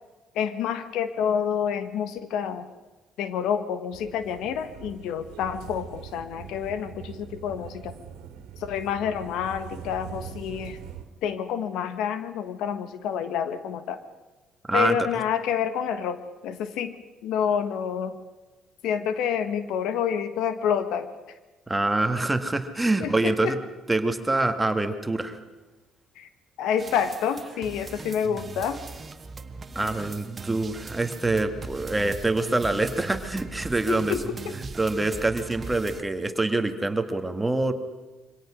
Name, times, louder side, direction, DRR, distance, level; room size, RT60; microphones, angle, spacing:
voice 1, 0.3-2.7 3.2-7.9 8.6-10.8 11.2-14.0 14.7-16.9 17.2-18.2 18.8-21.1 23.0-23.5 26.2-26.3 26.6-28.8 33.9-34.6, left 8 dB, 75° left, 11 dB, 1.4 m, -28 dB
sound 1, 3.9-11.1, right 9 dB, 85° right, 2.1 m, -42 dB
voice 2, 21.7-23.6 23.9-25.4 29.8-34.2 34.6-37.7, right 2 dB, 15° right, 7 dB, 1.9 m, -25 dB
sound 2, 26.8-36.0, right 4 dB, 35° right, 1.3 m, -39 dB
23.5 x 17.5 x 6.3 m, 1.2 s
supercardioid pair, 85°, 0 cm